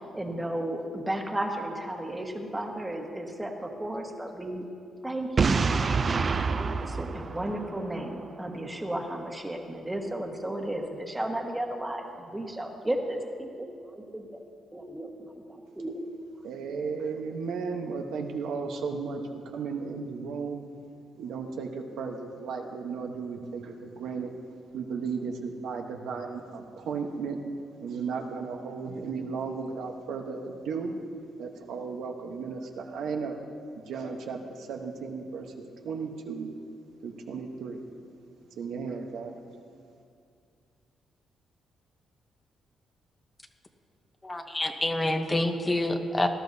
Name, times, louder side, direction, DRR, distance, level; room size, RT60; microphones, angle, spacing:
voice 1, 0.1-4.6 5.0-5.6 5.9-14.4 14.7-16.0, right 1 dB, 10° right, 2 dB, 1.5 m, -34 dB
Boom, 5.4-8.2, right 4 dB, 40° right, 0.5 m, -27 dB
voice 2, 16.4-20.6 21.2-24.3 24.7-27.4 27.8-30.9 31.4-33.4 33.8-35.5 35.8-36.5 37.0-37.8 38.6-39.4, right 5 dB, 85° right, 3 dB, 1.1 m, -35 dB
voice 3, 44.2-46.3, left 1 dB, 20° left, 5 dB, 0.9 m, -27 dB
18.5 x 12.0 x 2.8 m, 2.3 s
cardioid pair, 95°, 0 cm